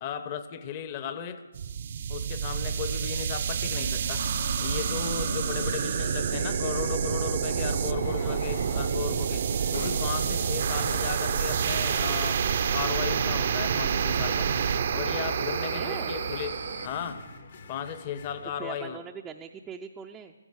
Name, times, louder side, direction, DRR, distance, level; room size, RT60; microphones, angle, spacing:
voice 1, 0.0-1.4 2.1-4.2 4.6-12.4 12.7-14.5 14.9-16.6 16.8-17.2 17.7-19.0, left 9 dB, 30° left, 11 dB, 1.0 m, -35 dB
nostalgic sci-fi, 1.5-16.9, right 7 dB, 50° right, 0.7 m, -28 dB
sound 1, 3.8-18.5, left 4 dB, 55° left, 1.4 m, -48 dB
sound 2, 4.0-17.1, left 2 dB, 90° left, 2.6 m, -42 dB
voice 2, 15.7-16.1 18.6-20.3, right 7 dB, 10° right, 2 dB, 0.5 m, -41 dB
15.0 x 14.5 x 6.3 m, 1.2 s
hypercardioid pair, 150°, 0 cm